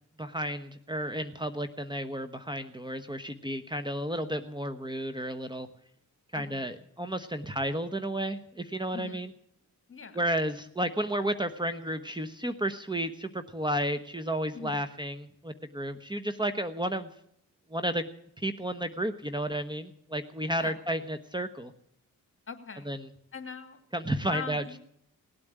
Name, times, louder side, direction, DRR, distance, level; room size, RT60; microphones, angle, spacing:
voice 1, 0.2-5.7 6.3-9.3 10.1-17.1 17.7-18.1 18.4-21.7 22.9-23.0 23.9-24.6, right 1 dB, 15° right, 9 dB, 1.1 m, -32 dB
voice 2, 6.3-6.9 8.9-9.3 9.9-10.2 14.5-14.9 20.5-20.8 22.5-23.0 23.3-23.8 24.3-24.8, left 6 dB, 40° left, 7 dB, 2.5 m, -41 dB
18.5 x 8.7 x 8.8 m, 0.70 s
cardioid pair, 70°, 33 cm